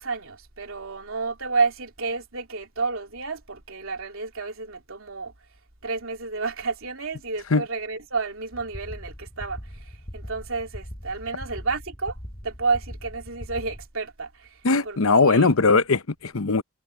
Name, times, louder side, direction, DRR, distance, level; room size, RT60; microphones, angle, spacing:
voice 1, 0.0-5.3 5.8-12.2 12.4-15.0 15.3-15.5, right 4 dB, 70° right, 3.0 m, -30 dB
sound 1, 8.5-13.9, equal, 25° left, 5.7 m, -40 dB
voice 2, 14.6-16.6, left 4 dB, 70° left, 0.8 m, -20 dB
head